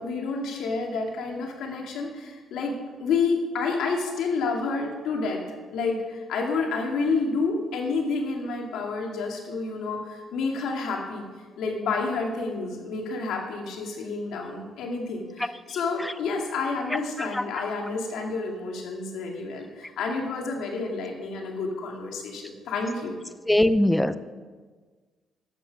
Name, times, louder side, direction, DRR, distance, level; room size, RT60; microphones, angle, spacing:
voice 1, 0.0-5.4 5.7-11.3 11.6-23.1, left 4 dB, 80° left, 1 dB, 2.2 m, -29 dB
voice 2, 23.5-24.2, left 1 dB, 10° left, 14 dB, 0.5 m, -21 dB
12.0 x 8.2 x 6.0 m, 1.4 s
cardioid pair, 90°, 0 cm